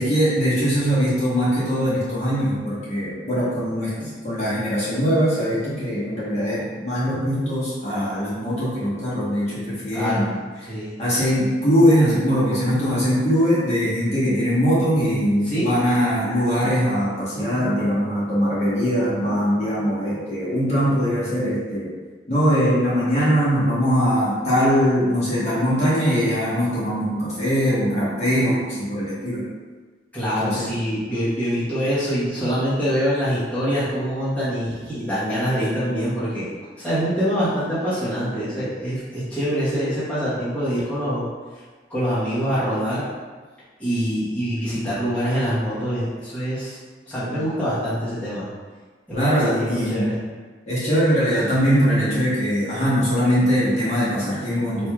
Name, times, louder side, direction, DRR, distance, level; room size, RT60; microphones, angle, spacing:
voice 1, 0.0-10.3 11.0-21.9 22.3-29.4 30.4-30.6 49.1-50.1 50.6-54.9, equal, 40° left, -10 dB, 1.1 m, -21 dB
voice 2, 9.9-10.3 10.7-11.0 15.5-15.7 30.1-36.5 36.8-41.2 41.9-43.1 43.8-46.8 47.1-48.5 49.1-50.2, equal, 10° left, -13 dB, 1.0 m, -24 dB
4.4 x 2.6 x 2.3 m, 1.4 s
head